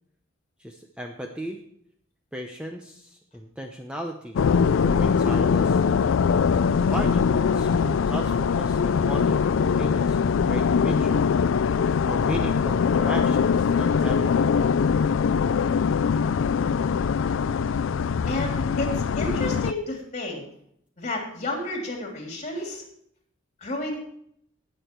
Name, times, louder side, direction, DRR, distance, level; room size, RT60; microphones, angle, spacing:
voice 1, 0.6-1.6 2.3-4.4 4.8-5.8 6.8-11.2 12.0-14.7, equal, 5° right, 2 dB, 0.8 m, -36 dB
sound 1, 4.4-19.7, left 6 dB, 70° left, 0.4 m, -22 dB
voice 2, 18.3-20.4 21.0-22.8 23.6-24.0, left 1 dB, 35° left, 1 dB, 3.1 m, -31 dB
18.5 x 6.7 x 4.5 m, 0.68 s
head